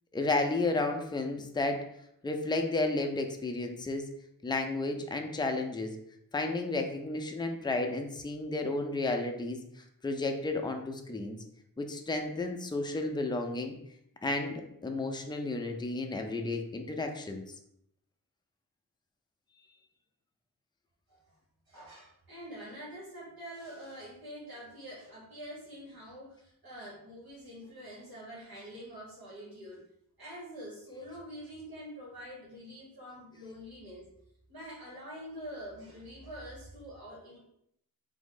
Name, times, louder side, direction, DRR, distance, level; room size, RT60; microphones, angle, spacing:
voice 1, 0.1-1.8 2.2-4.0 4.4-5.9 6.3-9.6 10.0-11.4 11.8-13.8 14.2-17.4, left 2 dB, 10° left, 4 dB, 0.4 m, -32 dB
voice 2, 21.7-29.8 30.2-34.1 34.5-37.4, equal, 75° right, -6 dB, 1.3 m, -46 dB
3.5 x 2.0 x 3.7 m, 0.74 s
wide cardioid pair, 50°, 36 cm